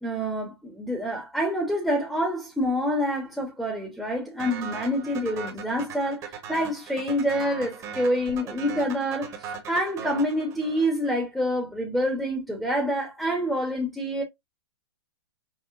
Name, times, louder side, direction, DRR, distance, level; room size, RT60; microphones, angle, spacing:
voice 1, 0.0-14.2, equal, ahead, 0.9 m, -27 dB
sound 1, 4.4-11.1, right 6 dB, 25° right, 1.0 m, -39 dB
5.7 x 2.1 x 2.5 m
hypercardioid pair, 145°, 13 cm